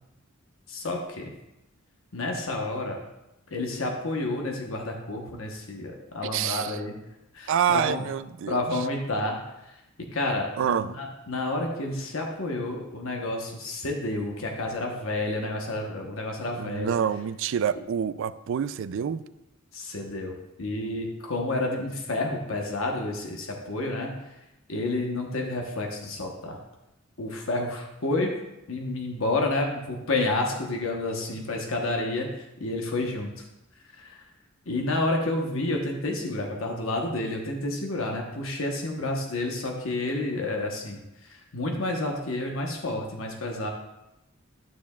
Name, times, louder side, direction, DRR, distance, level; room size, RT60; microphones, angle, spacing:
voice 1, 0.7-1.3 2.1-3.0 3.5-6.9 7.3-8.0 8.5-9.4 9.7-17.0 19.7-24.4 24.7-26.6 27.2-28.4 28.7-32.3 32.6-33.4 33.9-34.2 34.7-43.7, left 2 dB, 75° left, 1 dB, 1.1 m, -30 dB
voice 2, 6.2-6.8 7.5-8.6 10.6-10.9 16.6-19.2, right 8 dB, 65° right, 16 dB, 0.3 m, -27 dB
12.5 x 6.9 x 2.3 m, 0.92 s
head